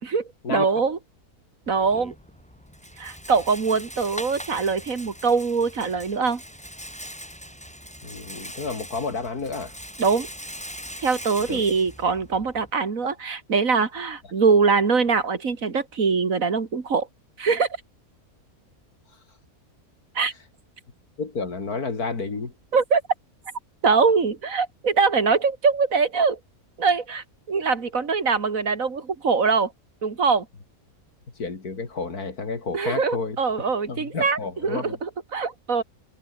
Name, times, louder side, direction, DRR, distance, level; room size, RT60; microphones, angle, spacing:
voice 1, 0.0-1.0 1.7-2.1 3.0-6.4 10.0-10.3 11.0-17.1 17.4-17.7 20.1-20.3 22.7-23.0 23.8-26.4 26.8-29.7 30.0-30.5 32.7-35.8, right 5 dB, 60° right, 2.5 m, -23 dB
Rattle, 1.6-12.7, equal, 5° left, 7.1 m, -41 dB
voice 2, 8.0-9.7 11.5-11.6 21.2-22.5 31.4-33.4 33.9-35.0, left 4 dB, 75° left, 3.6 m, -31 dB
omnidirectional pair, 1.6 m